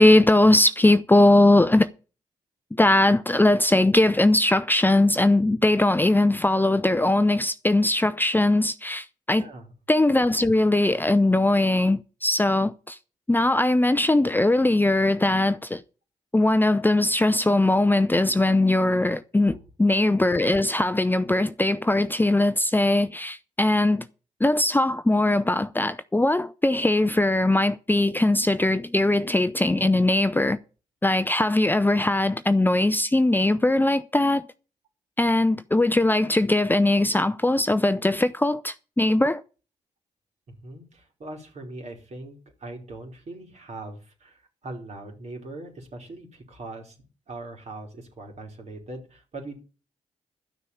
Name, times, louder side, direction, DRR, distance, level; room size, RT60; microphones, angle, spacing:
voice 1, 0.0-1.9 2.7-9.5 9.9-13.0 13.3-15.8 16.3-24.1 24.4-30.6 31.0-34.4 35.2-39.4, left 2 dB, 15° left, 0.6 m, -20 dB
voice 2, 9.3-9.8 19.5-19.6 40.5-47.0 47.3-49.6, right 2 dB, 60° right, 3.7 m, -41 dB
12.0 x 6.4 x 7.0 m
supercardioid pair, 45°, 13 cm